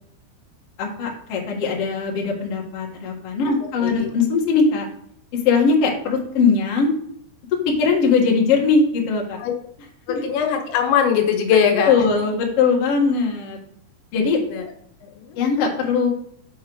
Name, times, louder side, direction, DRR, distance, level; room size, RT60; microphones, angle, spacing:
voice 1, 0.8-4.9 5.4-6.9 7.6-9.4 10.1-10.2 11.8-13.6 14.1-14.4 15.4-16.1, left 5 dB, 55° left, -1 dB, 1.7 m, -20 dB
voice 2, 10.1-11.9 14.5-14.6 15.0-15.4, left 7 dB, 80° left, 3 dB, 3.5 m, -21 dB
7.1 x 6.0 x 4.7 m, 0.68 s
omnidirectional pair, 5.1 m